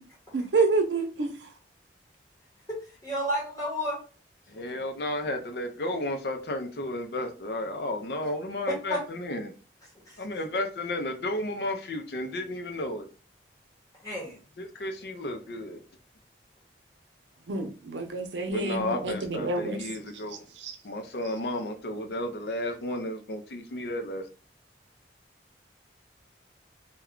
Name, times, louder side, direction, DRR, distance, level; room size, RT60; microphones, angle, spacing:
voice 1, 0.3-1.3 17.5-19.8 20.6-20.7, right 3 dB, 90° right, 0.6 m, -28 dB
voice 2, 3.0-4.0 8.7-9.0 9.9-10.2 14.0-14.4, equal, 20° left, 0.9 m, -31 dB
voice 3, 4.5-9.5 10.2-13.1 14.6-15.8 18.5-20.5 20.8-24.2, left 1 dB, 65° left, 0.5 m, -33 dB
2.2 x 2.2 x 3.6 m
head